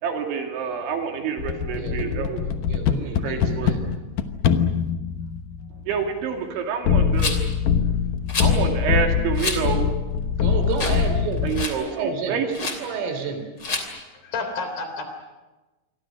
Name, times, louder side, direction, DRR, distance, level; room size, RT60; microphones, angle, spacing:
voice 1, 0.0-2.4 3.0-3.8 5.7-7.4 8.4-9.9 11.4-12.8, right 7 dB, 70° right, 3 dB, 4.8 m, -28 dB
sound 1, 1.4-6.0 6.9-11.7, left 7 dB, 85° left, 1.8 m, -23 dB
voice 2, 1.7-3.8 10.4-12.4 12.8-13.5, right 5 dB, 90° right, 7 dB, 6.0 m, -31 dB
Rattle, 7.2-7.5 8.3-8.5 9.4-9.6 10.1-10.2 10.7-11.1 11.3-11.8 12.5-12.8 13.6-13.9, left 3 dB, 25° left, 2.8 m, -28 dB
voice 3, 14.1-15.0, left 3 dB, 50° left, 6 dB, 5.0 m, -30 dB
28.5 x 24.0 x 6.3 m, 1.1 s
omnidirectional pair, 5.7 m